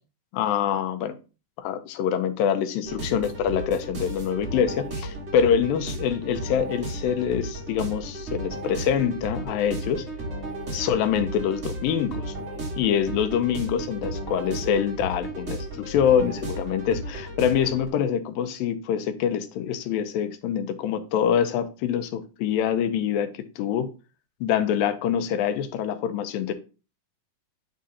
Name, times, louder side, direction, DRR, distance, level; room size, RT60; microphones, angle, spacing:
voice 1, 0.3-1.1 1.6-10.0 10.7-12.2 12.8-23.9 24.4-26.5, left 8 dB, 85° left, 9 dB, 2.4 m, -25 dB
sound 1, 2.8-17.9, right 2 dB, 90° right, 0.6 m, -34 dB
9.3 x 3.8 x 2.7 m, 0.33 s
omnidirectional pair, 4.0 m